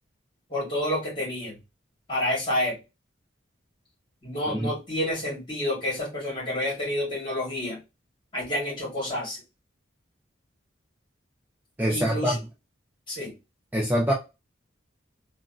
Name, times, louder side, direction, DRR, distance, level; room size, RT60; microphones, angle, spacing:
voice 1, 0.5-1.6 2.1-2.7 4.2-7.8 8.3-9.4 11.9-12.4 13.1-13.3, left 1 dB, 25° left, 1.8 m, -29 dB
voice 2, 11.8-12.4 13.7-14.1, equal, 10° right, 0.4 m, -24 dB
3.3 x 2.3 x 2.6 m
head